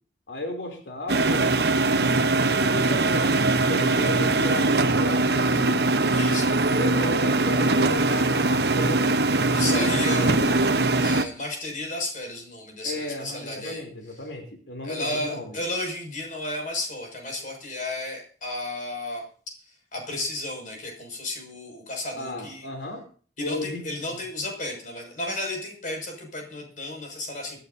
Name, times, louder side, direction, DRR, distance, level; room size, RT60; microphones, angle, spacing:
voice 1, 0.3-1.6 2.6-5.9 6.7-9.1 9.6-10.5 12.8-15.6 22.2-23.0 23.4-24.2, left 1 dB, 90° left, 3 dB, 3.1 m, -34 dB
sound 1, 1.1-11.2, right 2 dB, 65° right, 1.0 m, -22 dB
voice 2, 6.1-6.5 9.5-13.8 14.8-19.2 19.9-22.7 23.4-27.6, left 2 dB, 45° left, 1 dB, 6.2 m, -33 dB
24.5 x 12.0 x 2.7 m, 0.42 s
head